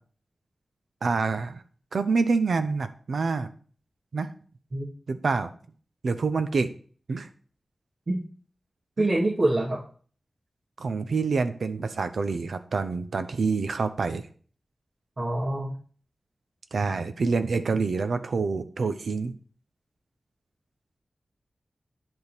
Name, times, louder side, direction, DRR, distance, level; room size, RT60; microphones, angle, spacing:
voice 1, 1.0-1.6 1.9-3.5 4.1-4.3 5.1-5.5 6.0-6.7 7.1-7.3 9.0-9.1 10.8-14.2 16.7-19.3, right 4 dB, 80° right, 9 dB, 0.8 m, -27 dB
voice 2, 9.0-9.8 15.2-15.8, right 2 dB, 50° right, -5 dB, 2.0 m, -25 dB
10.5 x 3.8 x 6.7 m, 0.43 s
wide cardioid pair, 95°, 0 cm